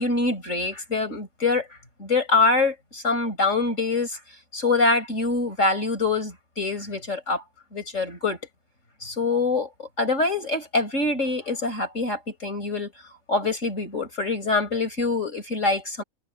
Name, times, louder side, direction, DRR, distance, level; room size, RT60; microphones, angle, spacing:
voice 1, 0.0-1.7 2.0-4.2 4.5-7.4 7.7-8.4 9.0-12.9 13.3-16.0, left 3 dB, 60° left, 6.4 m, -24 dB
omnidirectional pair, 1.5 m